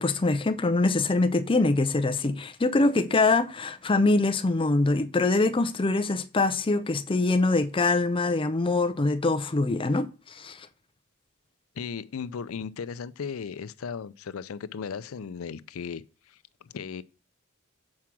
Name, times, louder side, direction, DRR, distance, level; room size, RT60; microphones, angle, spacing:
voice 1, 0.0-10.7, left 3 dB, 25° left, 0.5 m, -24 dB
voice 2, 11.8-17.0, left 6 dB, 85° left, 0.5 m, -36 dB
7.5 x 4.7 x 5.9 m
head